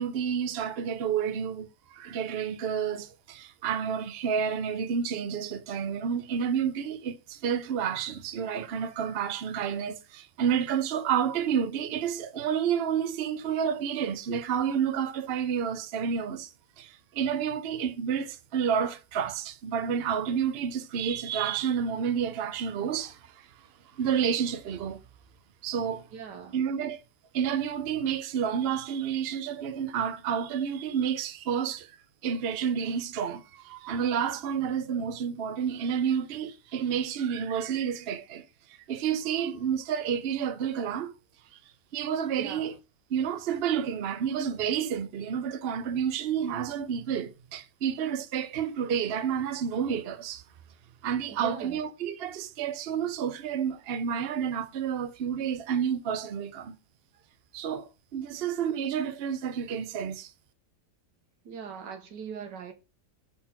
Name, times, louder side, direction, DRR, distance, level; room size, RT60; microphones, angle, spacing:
voice 1, 0.0-16.5 16.8-23.5 24.0-25.0 25.6-26.0 26.5-27.0 27.3-31.9 32.2-38.4 38.9-41.1 41.9-42.7 43.1-50.4 51.0-56.7 57.5-60.3, right 8 dB, 55° right, 0.7 m, -30 dB
voice 2, 26.1-26.6 42.4-42.7 51.4-51.8 58.3-58.4 61.5-62.7, right 6 dB, 90° right, 1.8 m, -40 dB
4.3 x 4.1 x 5.7 m
omnidirectional pair, 1.8 m